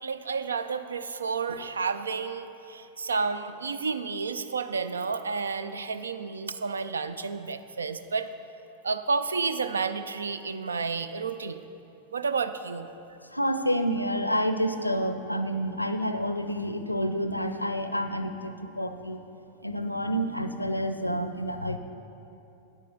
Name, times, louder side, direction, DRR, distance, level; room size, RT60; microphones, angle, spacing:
voice 1, 0.0-8.3 8.8-11.7 12.1-12.9, right 5 dB, 70° right, 11 dB, 0.4 m, -31 dB
voice 2, 13.2-19.2 19.6-21.8, equal, 85° left, 9 dB, 0.5 m, -29 dB
9.6 x 8.3 x 5.4 m, 2.9 s
figure-of-eight pair, 90°, 0 cm